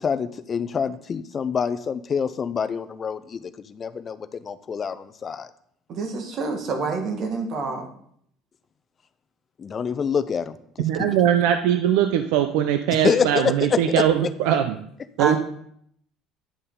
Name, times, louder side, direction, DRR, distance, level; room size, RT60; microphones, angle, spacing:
voice 1, 0.0-3.4 3.7-5.5 9.6-10.5 11.0-11.2 13.0-13.5, left 6 dB, 30° left, 12 dB, 0.5 m, -26 dB
voice 2, 5.9-7.9 15.2-15.4, right 4 dB, 45° right, 4 dB, 1.5 m, -27 dB
voice 3, 10.8-14.8 15.2-15.4, right 10 dB, 85° right, 7 dB, 0.5 m, -21 dB
10.0 x 6.8 x 3.8 m, 0.67 s
cardioid pair, 140°, 0 cm